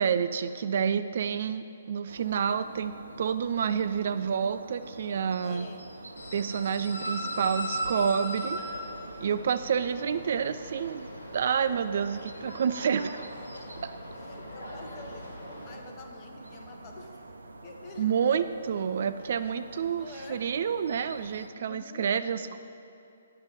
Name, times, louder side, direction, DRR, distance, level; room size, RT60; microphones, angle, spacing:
voice 1, 0.0-5.7 6.3-8.6 9.2-11.1 11.3-13.2 13.8-13.9 18.0-22.6, right 7 dB, 50° right, 11 dB, 0.3 m, -29 dB
sound 1, 2.1-21.5, right 2 dB, 70° right, 0.8 m, -47 dB
voice 2, 5.4-5.9 6.8-7.4 14.1-17.2 17.6-18.1 19.7-20.5 21.5-22.1 22.4-22.6, left 4 dB, 30° left, 3 dB, 1.1 m, -48 dB
sound 2, 6.2-15.8, equal, 65° left, 2.2 m, -39 dB
9.5 x 6.7 x 7.5 m, 2.7 s
figure-of-eight pair, 130°, 0 cm